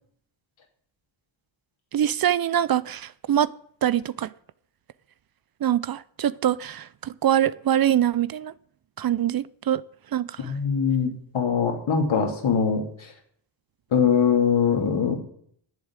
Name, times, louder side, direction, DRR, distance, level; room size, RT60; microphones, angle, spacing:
voice 1, 1.9-3.5 3.8-4.3 5.6-8.5 9.0-9.8 10.1-10.4, right 11 dB, 50° right, 0.6 m, -24 dB
voice 2, 10.4-13.1 13.9-15.2, left 6 dB, 70° left, 3.0 m, -22 dB
10.5 x 7.4 x 8.9 m
cardioid pair, 60°, 48 cm